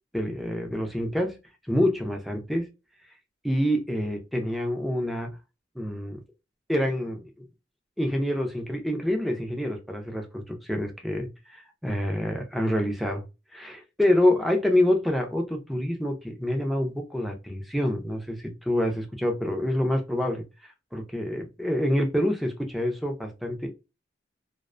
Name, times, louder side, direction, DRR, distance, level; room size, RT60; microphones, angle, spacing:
voice 1, 0.1-1.4 1.7-2.7 3.4-5.3 5.8-6.2 6.7-7.3 8.0-13.2 13.5-20.4 20.9-23.7, left 1 dB, ahead, 2 dB, 0.4 m, -27 dB
2.5 x 2.1 x 2.4 m, 0.27 s
head